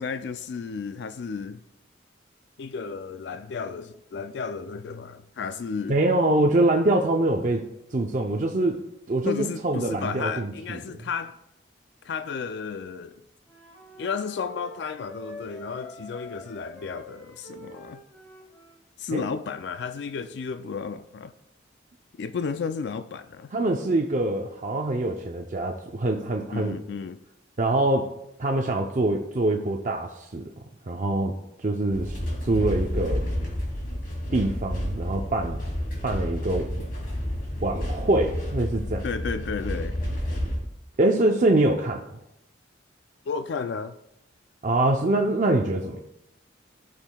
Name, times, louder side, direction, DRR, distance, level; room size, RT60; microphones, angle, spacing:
voice 1, 0.0-1.6 2.6-6.0 9.2-11.4 12.0-13.1 14.0-18.0 19.0-21.3 22.2-23.5 26.5-27.2 39.0-40.0 43.3-44.0, left 5 dB, 60° left, 0.3 m, -33 dB
voice 2, 5.9-7.6 7.9-8.8 9.1-10.8 19.1-19.2 23.5-26.8 27.6-28.1 28.4-30.5 30.9-31.3 31.6-33.2 34.3-35.6 36.0-36.7 37.6-39.0 41.0-42.0 44.6-46.0, right 2 dB, 40° right, 0.5 m, -24 dB
Wind instrument woodwind instrument, 13.5-18.8, equal, 10° left, 1.8 m, -46 dB
sound 1, 31.9-40.6, equal, 45° left, 2.3 m, -30 dB
15.0 x 6.3 x 2.3 m
head